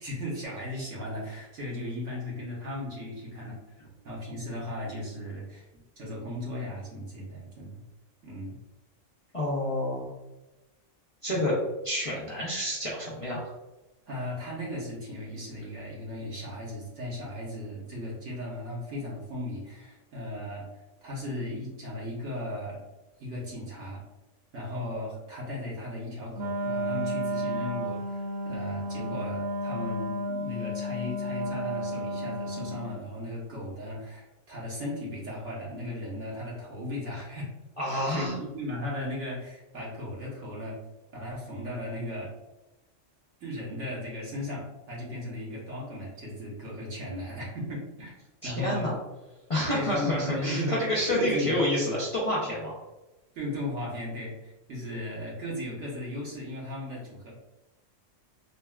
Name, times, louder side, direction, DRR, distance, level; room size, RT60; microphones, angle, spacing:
voice 1, 0.0-7.8 8.2-8.6 11.3-11.4 14.1-20.7 21.0-22.8 23.2-24.0 24.5-37.5 37.8-40.8 41.1-42.3 43.4-48.1 48.4-48.9 49.7-51.6 53.3-57.3, left 1 dB, 75° right, -5 dB, 1.3 m, -36 dB
voice 2, 9.3-10.1 11.2-11.6 11.8-13.5 37.8-38.3 48.4-49.0 49.5-52.7, left 1 dB, 35° left, -7 dB, 0.6 m, -28 dB
Wind instrument woodwind instrument, 26.3-33.0, equal, 90° right, 1.0 m, -32 dB
3.9 x 2.2 x 2.2 m, 1.0 s
omnidirectional pair, 1.3 m